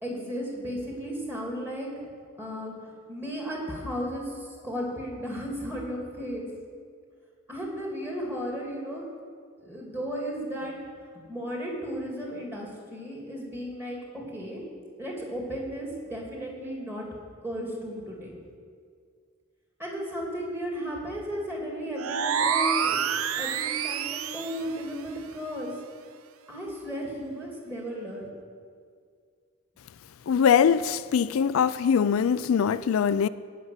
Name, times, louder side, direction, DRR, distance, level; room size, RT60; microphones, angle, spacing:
voice 1, 0.0-1.9 2.4-4.3 4.6-6.5 7.5-9.0 9.6-10.7 11.1-14.6 15.0-17.0 17.4-18.4 19.8-25.7 26.5-28.3, equal, 10° right, 2.8 m, -34 dB
sound 1, 22.0-24.7, right 7 dB, 80° right, 0.6 m, -27 dB
voice 2, 30.3-33.3, left 7 dB, 75° left, 0.4 m, -22 dB
15.5 x 6.0 x 9.6 m
head